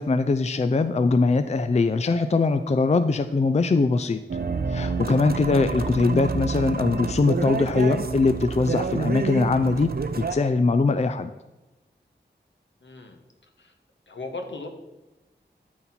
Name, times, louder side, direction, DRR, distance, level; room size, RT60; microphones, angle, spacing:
voice 1, 0.0-4.2 4.7-11.3, left 3 dB, 35° left, 10 dB, 0.4 m, -22 dB
sound 1, 4.3-10.3, right 4 dB, 55° right, 0.6 m, -28 dB
voice 2, 12.8-13.2 13.6-13.7 14.1-14.7, left 3 dB, 75° left, 4 dB, 1.2 m, -37 dB
12.5 x 4.2 x 4.4 m, 1.0 s
wide cardioid pair, 55°, 19 cm